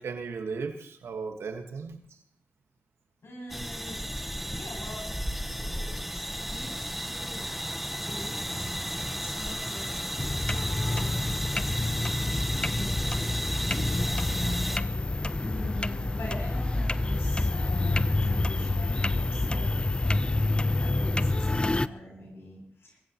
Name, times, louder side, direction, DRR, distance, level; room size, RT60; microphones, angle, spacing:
voice 1, 0.0-2.0 14.3-14.6, right 4 dB, 85° right, 5 dB, 1.6 m, -36 dB
voice 2, 3.2-4.0 4.5-5.1 5.4-7.5 8.0-9.9 10.6-11.3 11.8-12.2 12.7-13.0 13.6-20.2 20.8-23.0, left 1 dB, 70° left, -1 dB, 7.8 m, -43 dB
sound 1, 3.5-14.8, equal, ahead, 1.2 m, -34 dB
sound 2, 10.2-21.9, left 2 dB, 25° left, 0.6 m, -28 dB
23.0 x 15.0 x 3.0 m, 0.64 s
cardioid pair, 45°, 4 cm